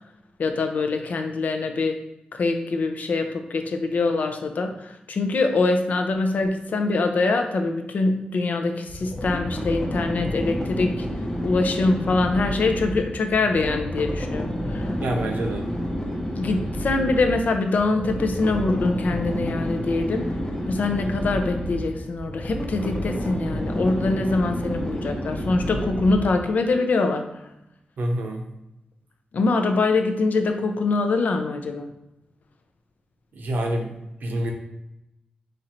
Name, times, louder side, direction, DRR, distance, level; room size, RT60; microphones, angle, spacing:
voice 1, 0.4-2.0 2.3-11.1 11.4-14.9 16.4-20.3 20.7-27.3 29.3-31.9, left 3 dB, 60° left, 6 dB, 0.5 m, -24 dB
sound 1, 8.9-26.5, equal, 15° left, 0.7 m, -29 dB
voice 2, 15.0-15.7 28.0-28.4 33.4-33.9 34.2-34.5, right 1 dB, 75° right, 2 dB, 0.7 m, -26 dB
4.3 x 2.5 x 4.3 m, 0.89 s
wide cardioid pair, 175°, 3 cm